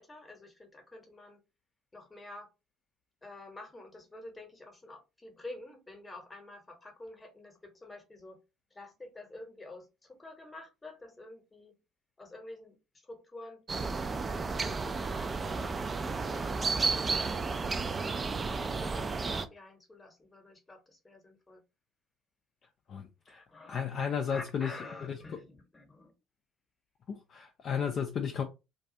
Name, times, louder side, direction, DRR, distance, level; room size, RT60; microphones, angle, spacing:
voice 1, 0.0-1.4 1.9-2.5 3.2-8.4 8.7-11.7 12.2-12.8 13.0-13.7 14.0-15.8 16.3-16.6 17.2-17.7 18.6-21.6 23.3-26.1, left 2 dB, 20° left, 0.9 m, -49 dB
sound 1, 13.7-19.5, right 4 dB, 25° right, 0.3 m, -32 dB
voice 2, 22.9-23.4 23.7-24.7 25.0-25.1 27.1-28.4, left 7 dB, 45° left, 0.4 m, -33 dB
2.4 x 2.3 x 2.7 m
figure-of-eight pair, 60°, 0 cm